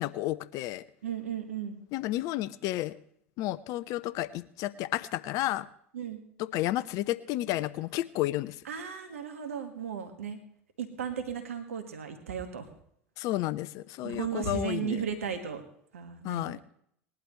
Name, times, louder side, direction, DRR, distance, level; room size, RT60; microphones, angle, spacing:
voice 1, 0.0-0.8 1.9-3.0 3.4-5.7 6.4-8.6 13.2-15.0 16.2-16.6, left 15 dB, 50° left, 17 dB, 0.6 m, -31 dB
voice 2, 1.0-1.8 5.9-6.3 8.7-10.4 10.8-12.7 14.0-15.6 15.9-16.6, right 7 dB, 80° right, 7 dB, 1.8 m, -35 dB
20.5 x 11.5 x 3.2 m, 0.67 s
hypercardioid pair, 85°, 7 cm